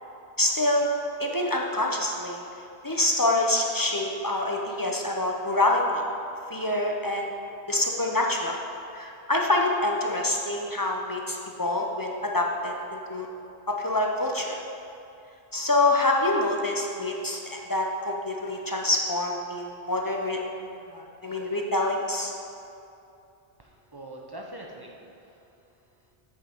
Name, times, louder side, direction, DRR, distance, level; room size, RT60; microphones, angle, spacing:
voice 1, 0.4-0.9 1.2-2.4 2.8-6.0 6.5-7.3 7.7-8.6 8.9-13.3 13.7-14.6 15.5-20.4 20.9-22.3, left 2 dB, 25° left, 0 dB, 0.5 m, -26 dB
voice 2, 23.6-26.1, right 1 dB, 25° right, 0 dB, 0.6 m, -45 dB
7.5 x 6.5 x 4.4 m, 2.7 s
omnidirectional pair, 1.1 m